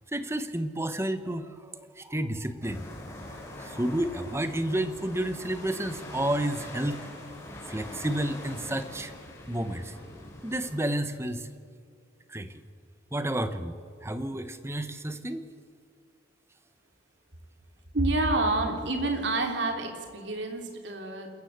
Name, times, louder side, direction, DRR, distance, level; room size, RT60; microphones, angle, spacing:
voice 1, 0.1-2.9 3.6-7.1 7.6-9.1 9.5-10.0 10.4-11.5 12.3-12.6 13.1-15.4, right 1 dB, 15° right, 10 dB, 1.1 m, -31 dB
sound 1, 2.6-10.9, left 1 dB, 15° left, 4.6 m, -43 dB
voice 2, 17.9-21.3, right 2 dB, 65° right, 3 dB, 3.2 m, -28 dB
28.0 x 14.0 x 8.2 m, 2.2 s
head